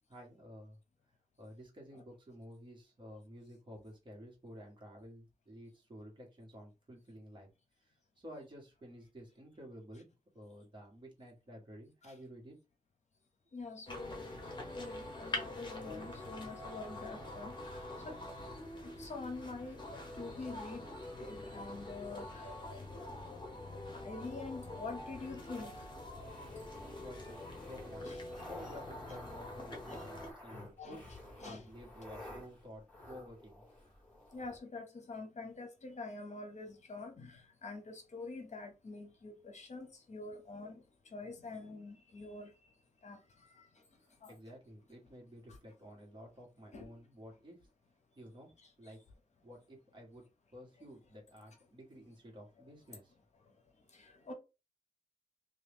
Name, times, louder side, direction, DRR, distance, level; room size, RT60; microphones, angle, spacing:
voice 1, 0.1-0.8 1.4-7.5 7.8-10.0 10.3-12.6 26.4-31.1 31.4-33.6 44.0-47.6 48.1-49.0 49.4-50.2 50.5-53.1, equal, 35° right, 1.4 m, -52 dB
voice 2, 13.5-14.5 14.8-18.2 18.8-19.8 20.1-20.8 21.2-22.5 23.9-25.7 28.1-28.2 30.5-31.0 31.4-31.6 34.3-40.8 41.1-42.5 43.0-43.2 43.5-43.7 44.2-44.3 46.7-46.9 53.9-54.3, left 3 dB, 60° left, 0.8 m, -46 dB
sound 1, 13.9-30.3, left 2 dB, 35° left, 1.0 m, -45 dB
sound 2, 26.1-34.6, left 1 dB, 10° left, 1.8 m, -52 dB
3.0 x 2.6 x 3.5 m
wide cardioid pair, 150°, 13 cm